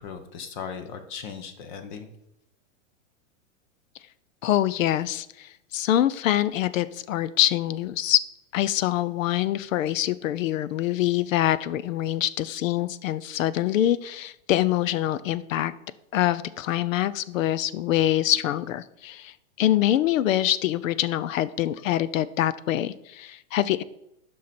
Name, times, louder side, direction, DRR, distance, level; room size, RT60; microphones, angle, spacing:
voice 1, 0.0-2.1, left 6 dB, 35° left, 9 dB, 0.8 m, -38 dB
voice 2, 4.4-8.2 8.5-15.7 16.1-23.8, left 13 dB, 80° left, 17 dB, 0.6 m, -25 dB
9.4 x 5.7 x 4.2 m, 0.85 s
supercardioid pair, 170°, 39 cm